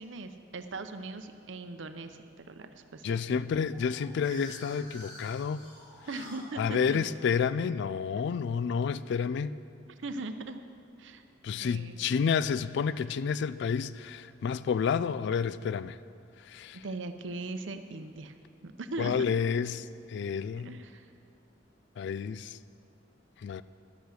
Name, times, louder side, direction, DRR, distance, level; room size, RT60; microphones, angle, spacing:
voice 1, 0.0-3.5 6.1-7.0 8.2-8.3 10.0-10.6 11.0-11.2 11.6-12.0 16.7-18.3 18.6-19.3 20.6-21.1, right 3 dB, 70° right, 0.7 m, -40 dB
voice 2, 3.0-5.6 6.6-9.5 11.4-16.0 16.5-16.8 19.0-20.7 22.0-22.6 23.4-23.6, left 6 dB, 65° left, 0.3 m, -30 dB
sound 1, 3.7-8.5, equal, 45° left, 3.4 m, -50 dB
12.5 x 8.1 x 6.4 m
head